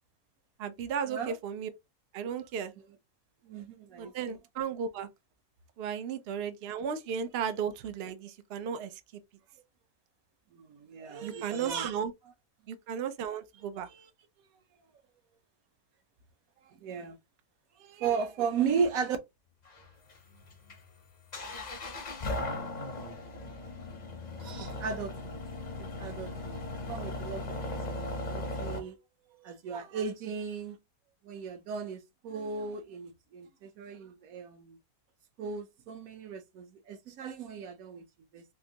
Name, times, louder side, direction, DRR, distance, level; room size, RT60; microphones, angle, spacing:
voice 1, 0.6-1.7 2.1-2.7 4.0-5.1 5.8-8.9 11.2-12.1 12.7-13.9, right 7 dB, 80° right, 0.5 m, -35 dB
voice 2, 3.4-4.4 10.5-12.0 13.9-14.1 16.7-17.2 17.8-19.2 24.4-25.4 26.0-26.6 26.9-29.0 29.4-30.8 31.2-34.8 35.4-38.0 38.3-38.4, right 6 dB, 65° right, 1.0 m, -36 dB
sound 1, 19.6-28.8, left 2 dB, 45° left, 0.5 m, -38 dB
3.6 x 2.5 x 2.7 m
omnidirectional pair, 1.7 m